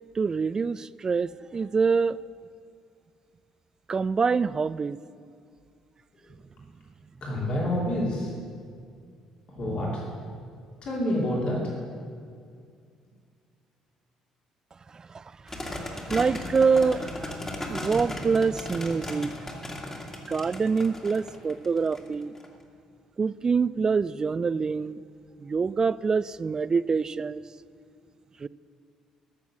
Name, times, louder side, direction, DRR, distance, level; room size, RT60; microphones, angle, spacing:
voice 1, 0.2-2.2 3.9-5.0 14.9-15.2 15.7-17.4 17.7-19.3 19.7-19.8 20.3-22.3 23.2-25.0 25.4-27.4 28.4-28.5, right 5 dB, 30° right, 18 dB, 0.3 m, -25 dB
voice 2, 7.2-8.3 9.5-10.0 10.8-11.6, left 1 dB, 50° left, -4 dB, 2.9 m, -28 dB
sound 1, 15.5-22.5, left 1 dB, 20° left, 2.1 m, -36 dB
14.0 x 7.0 x 6.1 m, 2.2 s
figure-of-eight pair, 50°, 2 cm